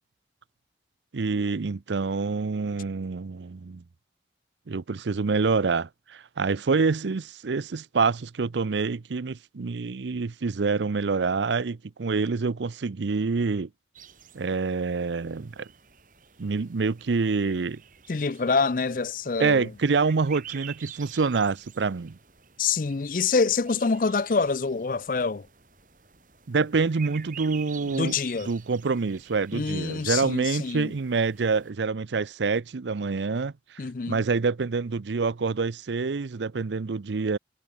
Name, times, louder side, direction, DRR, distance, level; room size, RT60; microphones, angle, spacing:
voice 1, 1.1-3.8 4.7-13.7 14.3-15.7 16.4-17.8 19.4-22.2 26.5-28.2 28.5-33.5 34.1-37.4, right 4 dB, 90° right, 0.6 m, -26 dB
sound 1, 13.9-31.7, right 9 dB, 50° right, 4.4 m, -49 dB
voice 2, 18.1-19.7 22.6-25.5 27.9-28.5 29.5-30.9 33.8-34.2, left 4 dB, 50° left, 0.5 m, -26 dB
head